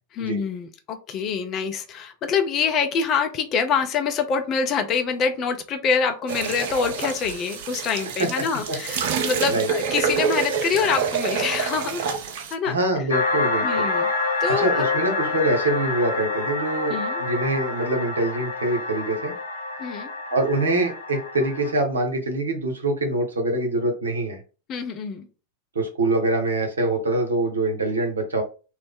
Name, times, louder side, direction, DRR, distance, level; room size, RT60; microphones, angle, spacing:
voice 1, 0.1-12.1 12.5-13.1 13.6-14.1 14.4-15.0 16.9-17.2 19.8-20.1 24.7-25.3, left 6 dB, 35° left, 6 dB, 0.5 m, -25 dB
sound 1, 6.3-12.5, right 6 dB, 50° right, 0.5 m, -27 dB
voice 2, 12.6-13.9 14.6-19.3 20.3-24.4 25.7-28.4, right 2 dB, 70° right, 4 dB, 0.8 m, -24 dB
sound 2, 13.1-21.7, left 3 dB, 65° left, 0.8 m, -27 dB
3.0 x 2.0 x 3.5 m, 0.34 s
figure-of-eight pair, 90°, 0 cm